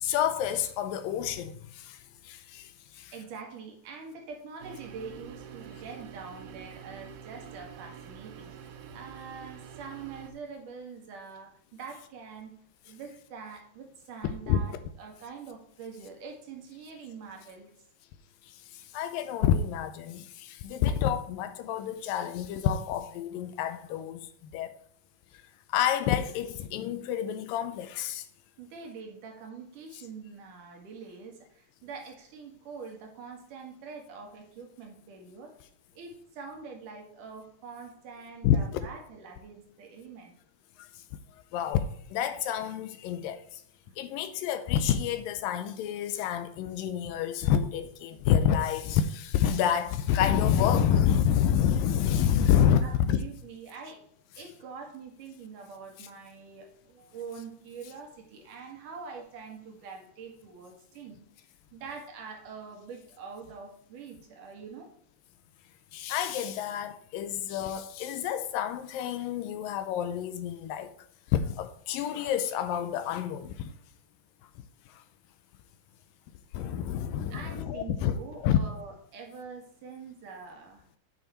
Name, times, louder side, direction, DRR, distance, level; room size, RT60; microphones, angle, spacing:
voice 1, 0.0-1.5 2.3-2.6 14.5-14.6 18.9-24.2 24.5-24.7 25.7-28.2 38.4-38.8 41.5-41.8 42.1-43.4 44.0-53.2 65.9-70.9 71.3-73.7 76.5-78.1 78.4-78.6, left 9 dB, 80° left, 2.2 m, -28 dB
voice 2, 2.9-12.5 12.8-17.7 28.6-35.6 35.9-40.3 43.8-43.9 52.8-54.0 54.4-61.2 61.7-64.9 77.3-81.0, right 5 dB, 65° right, 3.3 m, -44 dB
sound 1, 4.6-10.3, right 8 dB, 85° right, 2.7 m, -46 dB
9.2 x 5.9 x 4.4 m
omnidirectional pair, 4.2 m